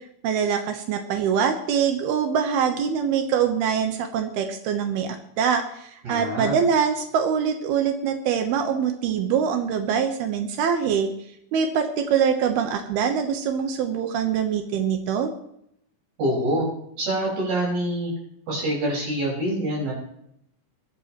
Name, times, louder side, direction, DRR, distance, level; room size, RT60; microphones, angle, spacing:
voice 1, 0.2-11.1 11.5-15.3, right 7 dB, 85° right, 6 dB, 3.1 m, -24 dB
voice 2, 6.0-6.6 16.2-16.7 17.0-18.1 18.5-19.9, right 1 dB, 65° right, -3 dB, 7.2 m, -25 dB
22.0 x 11.0 x 3.1 m, 0.73 s
omnidirectional pair, 4.4 m